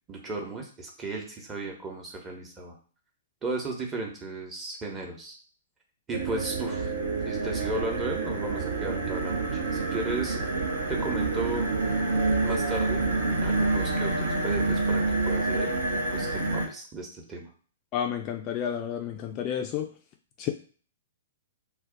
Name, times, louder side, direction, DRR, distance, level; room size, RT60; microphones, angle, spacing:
voice 1, 0.1-2.8 3.4-5.4 6.1-6.9 7.3-10.4 10.9-11.7 12.4-13.1 13.4-17.5, right 2 dB, 20° right, 0 dB, 0.8 m, -35 dB
sound 1, 6.1-16.7, right 3 dB, 70° right, 0.8 m, -27 dB
voice 2, 17.9-19.9 20.4-20.5, left 9 dB, 30° left, 3 dB, 0.3 m, -30 dB
2.5 x 2.1 x 3.7 m, 0.41 s
figure-of-eight pair, 110°, 0 cm